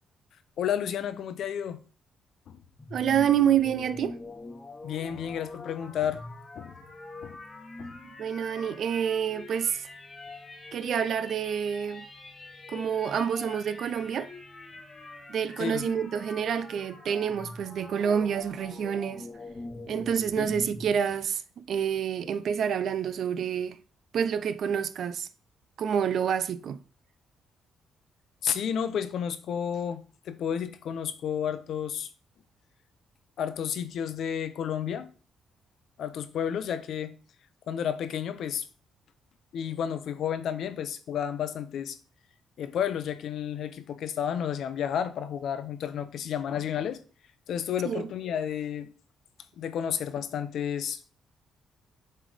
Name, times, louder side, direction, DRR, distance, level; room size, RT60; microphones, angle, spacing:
voice 1, 0.6-1.8 2.5-2.6 4.8-6.2 6.6-6.8 7.2-7.4 7.8-8.0 15.6-15.9 20.4-20.5 28.4-32.1 33.4-35.1 36.0-37.1 37.7-38.7 39.5-42.0 42.6-47.0 47.5-48.9 49.6-51.0, left 8 dB, 70° left, 0.7 m, -31 dB
sound 1, 2.8-20.9, left 2 dB, 25° left, 1.2 m, -44 dB
voice 2, 2.9-4.2 8.2-9.9 10.7-12.0 12.7-14.3 15.3-19.3 19.9-21.4 21.7-23.8 24.1-25.3 25.8-26.8 47.8-48.1, right 8 dB, 65° right, 0.5 m, -28 dB
7.4 x 3.4 x 4.9 m
cardioid pair, 90°, 0 cm